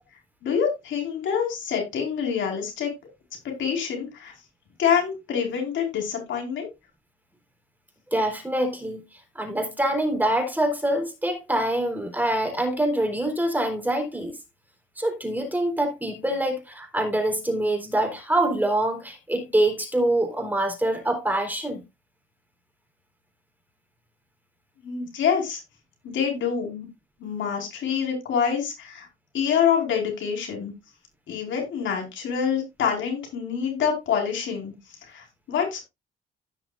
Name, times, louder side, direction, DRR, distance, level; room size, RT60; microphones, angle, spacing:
voice 1, 0.4-2.9 3.4-4.3 4.8-6.7 24.8-25.6 26.0-26.9 27.2-29.1 29.3-30.7 31.3-34.7 35.0-35.8, left 7 dB, 75° left, 4.9 m, -26 dB
voice 2, 8.1-14.4 15.0-21.8, right 1 dB, 10° right, 3.8 m, -25 dB
15.5 x 6.1 x 2.5 m
cardioid pair, 90°, 20 cm